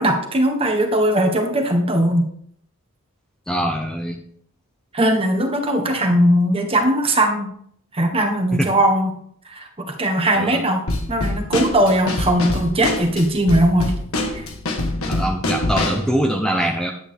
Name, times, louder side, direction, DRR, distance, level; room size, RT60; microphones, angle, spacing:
voice 1, 0.0-2.3 4.9-7.5 7.9-9.1 9.4-13.9 14.3-14.5, right 1 dB, 25° right, 3 dB, 1.4 m, -19 dB
voice 2, 3.5-4.2 8.6-8.7 10.4-10.6 15.1-16.9, right 1 dB, 5° left, 2 dB, 0.7 m, -23 dB
Drum kit / Snare drum, 10.9-16.1, left 2 dB, 65° left, 1.5 m, -25 dB
10.0 x 8.8 x 3.5 m, 0.64 s
head